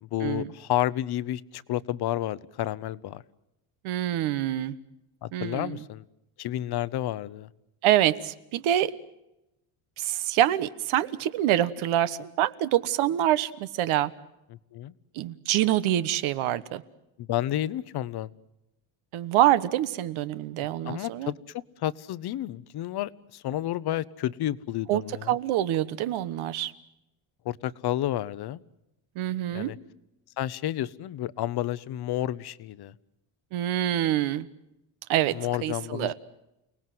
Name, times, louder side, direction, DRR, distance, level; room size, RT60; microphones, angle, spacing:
voice 1, 0.0-3.2 5.2-6.0 6.4-7.5 14.7-14.9 17.2-18.3 20.8-25.4 27.4-28.6 29.5-29.8 30.4-32.9 35.3-36.1, left 13 dB, 50° left, 17 dB, 0.9 m, -31 dB
voice 2, 3.8-4.8 5.3-5.8 7.8-8.9 10.0-14.1 15.1-16.8 19.1-21.3 24.9-25.0 25.3-26.7 29.1-29.7 33.5-34.5 35.1-35.4 35.6-36.1, right 13 dB, 80° right, 13 dB, 1.4 m, -26 dB
29.5 x 19.0 x 7.8 m, 0.89 s
cardioid pair, 150°, 48 cm